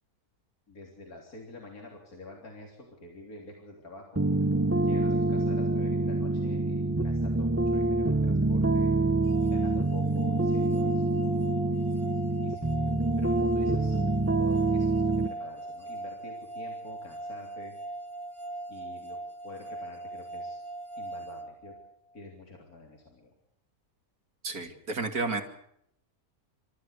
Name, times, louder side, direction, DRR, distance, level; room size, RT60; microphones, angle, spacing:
voice 1, 0.7-4.2 4.8-8.9 9.5-12.0 12.4-12.8 13.2-14.0 14.4-17.7 18.7-19.2 19.4-20.6 21.0-21.7 22.1-23.3, left 2 dB, 80° left, 0 dB, 4.0 m, -47 dB
sound 1, 4.2-15.3, right 2 dB, 15° right, 0.5 m, -26 dB
sound 2, 9.3-22.2, right 2 dB, 75° right, 3.1 m, -40 dB
voice 2, 24.4-25.4, right 3 dB, 90° right, 5 dB, 3.2 m, -31 dB
29.5 x 14.0 x 8.3 m, 0.72 s
omnidirectional pair, 1.5 m